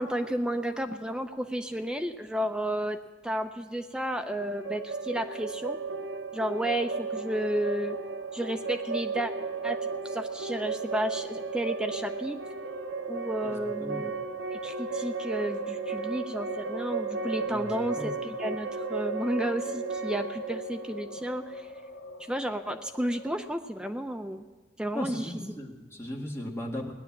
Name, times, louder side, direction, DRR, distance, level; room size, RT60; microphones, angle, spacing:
voice 1, 0.0-3.0 3.2-5.8 6.3-8.0 8.3-9.3 9.6-9.8 10.0-12.4 13.1-14.1 14.5-21.7 22.3-24.4 24.8-25.3, right 1 dB, 5° right, 6 dB, 0.5 m, -32 dB
sound 1, 4.4-22.2, right 5 dB, 85° right, 0.6 m, -35 dB
sound 2, 5.6-23.5, left 1 dB, 70° left, 0.8 m, -44 dB
voice 2, 13.4-14.0 17.4-18.2 24.9-26.9, left 1 dB, 15° left, -1 dB, 1.8 m, -37 dB
18.0 x 10.5 x 7.3 m, 1.3 s
head